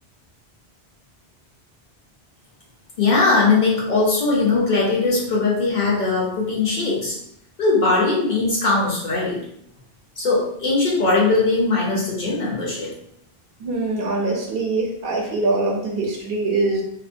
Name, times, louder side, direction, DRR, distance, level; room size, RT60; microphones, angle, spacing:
voice 1, 3.0-7.2 7.6-9.4 10.2-12.9, left 3 dB, 55° left, -4 dB, 0.8 m, -20 dB
voice 2, 13.6-16.8, right 2 dB, 70° right, 0 dB, 0.8 m, -23 dB
2.7 x 2.1 x 2.5 m, 0.73 s
omnidirectional pair, 1.0 m